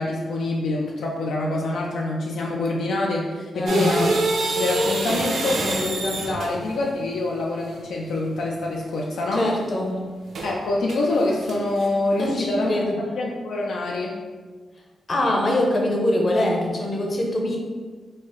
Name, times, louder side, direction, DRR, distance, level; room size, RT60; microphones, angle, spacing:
voice 1, 0.0-4.1 4.6-9.5 10.4-12.8 13.1-14.2, left 2 dB, 85° left, -1 dB, 0.4 m, -25 dB
voice 2, 3.5-4.0 9.3-10.1 12.2-13.0 15.1-17.6, left 1 dB, 45° left, -1 dB, 0.7 m, -23 dB
sound 1, 3.7-6.7 10.3-10.5 10.9-11.9, right 2 dB, 85° right, 0.6 m, -25 dB
4.1 x 2.0 x 3.7 m, 1.4 s
cardioid pair, 95°, 0 cm